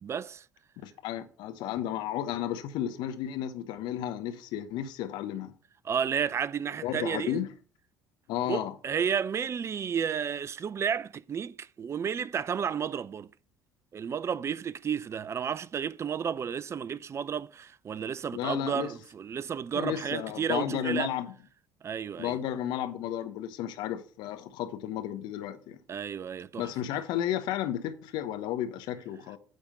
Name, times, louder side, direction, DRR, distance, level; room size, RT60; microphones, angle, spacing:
voice 1, 0.0-0.4 5.8-7.4 8.5-13.3 13.9-21.1 21.8-22.4 25.9-26.7, right 7 dB, 35° right, 0.4 m, -32 dB
voice 2, 0.8-5.5 6.8-7.5 8.3-8.7 18.3-18.9 19.7-21.3 22.2-25.8 26.6-29.4, left 11 dB, 65° left, 1.0 m, -33 dB
9.0 x 3.6 x 6.7 m
hypercardioid pair, 60°, 8 cm